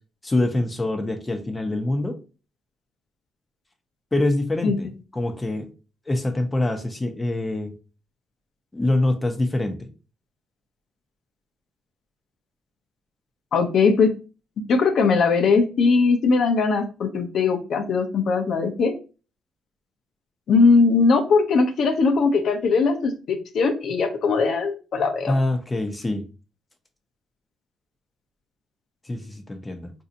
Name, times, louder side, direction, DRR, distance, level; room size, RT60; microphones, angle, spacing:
voice 1, 0.2-2.2 4.1-5.7 6.1-7.7 8.7-9.9 25.3-26.2 29.0-29.9, left 2 dB, 20° left, 7 dB, 0.8 m, -25 dB
voice 2, 13.5-14.1 14.7-18.9 20.5-25.3, left 4 dB, 65° left, 7 dB, 0.7 m, -20 dB
4.0 x 2.7 x 2.6 m, 0.34 s
cardioid pair, 90°, 0 cm